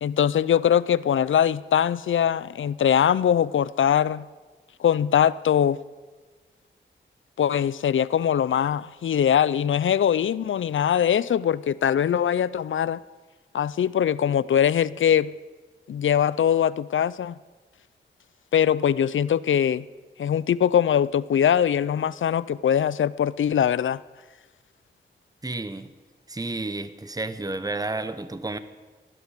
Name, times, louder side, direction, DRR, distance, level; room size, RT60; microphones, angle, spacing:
voice 1, 0.0-4.3 4.8-5.8 7.4-13.0 13.5-15.3 15.9-17.3 18.5-19.8 20.2-24.0, left 9 dB, 85° left, 19 dB, 0.4 m, -22 dB
voice 2, 25.4-25.9 26.3-28.6, right 2 dB, 20° right, 12 dB, 0.9 m, -31 dB
16.5 x 11.5 x 6.6 m, 1.3 s
wide cardioid pair, 70°, 20 cm